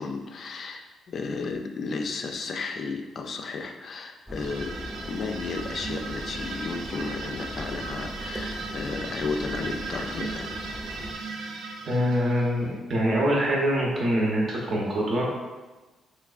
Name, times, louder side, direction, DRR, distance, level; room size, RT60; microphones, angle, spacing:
voice 1, 0.0-10.6, left 4 dB, 55° left, 5 dB, 0.3 m, -33 dB
sound 1, 4.3-11.1, equal, 10° right, 0.7 m, -40 dB
sound 2, 4.3-12.8, right 3 dB, 85° right, 0.4 m, -37 dB
voice 2, 11.9-15.3, equal, 50° right, -4 dB, 0.7 m, -24 dB
3.4 x 3.2 x 2.4 m, 1.2 s
cardioid pair, 90°, 0 cm